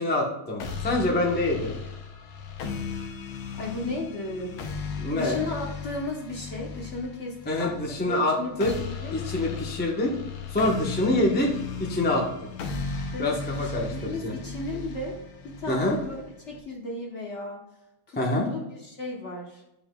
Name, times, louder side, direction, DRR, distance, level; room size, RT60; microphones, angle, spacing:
voice 1, 0.0-1.8 5.0-5.4 7.5-8.7 9.1-10.1 10.5-11.5 11.8-12.2 13.2-14.3 15.7-16.0 18.2-18.5, left 1 dB, 10° left, -1 dB, 0.5 m, -25 dB
sound 1, 0.6-16.6, left 5 dB, 90° left, 1.7 m, -36 dB
voice 2, 3.5-4.5 5.1-9.2 13.1-15.2 15.4-16.2 16.5-17.6 18.1-19.6, left 2 dB, 45° left, -2 dB, 1.1 m, -35 dB
9.4 x 5.7 x 2.3 m, 0.85 s
omnidirectional pair, 2.3 m